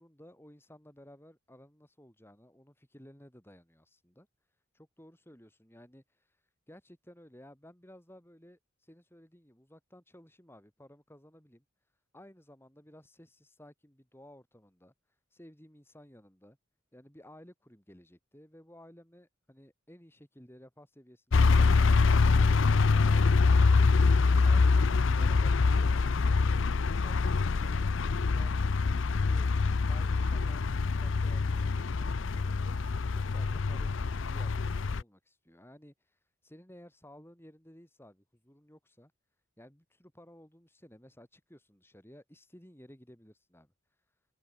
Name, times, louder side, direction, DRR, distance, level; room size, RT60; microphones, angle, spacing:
voice 1, 0.0-4.3 4.7-6.3 6.7-11.6 12.1-14.9 15.3-16.6 16.9-21.9 27.0-27.8 28.1-28.7 29.1-29.5 29.8-32.6 33.1-39.1 39.6-43.7, equal, 10° left, 4.0 m, -55 dB
sound 1, 21.3-35.0, left 4 dB, 65° left, 0.5 m, -25 dB
head